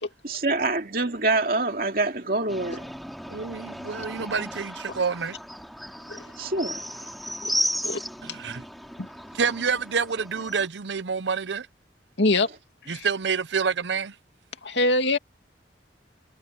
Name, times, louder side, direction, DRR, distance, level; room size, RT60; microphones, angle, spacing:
voice 1, 0.2-2.8 6.4-7.1, right 2 dB, 55° right, 2.5 m, -26 dB
sound 1, 2.5-10.7, equal, ahead, 3.2 m, -35 dB
voice 2, 3.3-5.4 8.2-8.6 9.3-11.7 12.9-14.1, right 5 dB, 80° right, 0.7 m, -28 dB
voice 3, 12.2-12.5 12.8-13.1 14.6-15.2, left 2 dB, 85° left, 2.6 m, -24 dB
head